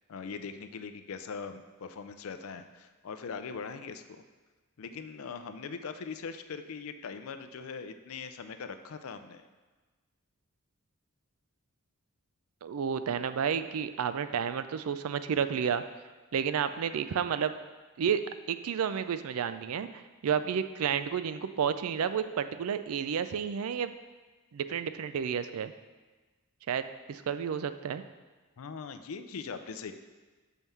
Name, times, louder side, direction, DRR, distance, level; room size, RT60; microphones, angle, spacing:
voice 1, 0.1-4.2 4.8-9.4 28.6-29.9, left 5 dB, 70° left, 9 dB, 0.4 m, -41 dB
voice 2, 12.6-15.8 16.3-17.5 18.0-18.2 18.5-23.9 24.5-25.7 26.7-26.8 27.1-28.0, right 7 dB, 75° right, 12 dB, 0.4 m, -31 dB
5.5 x 4.6 x 5.5 m, 1.3 s
head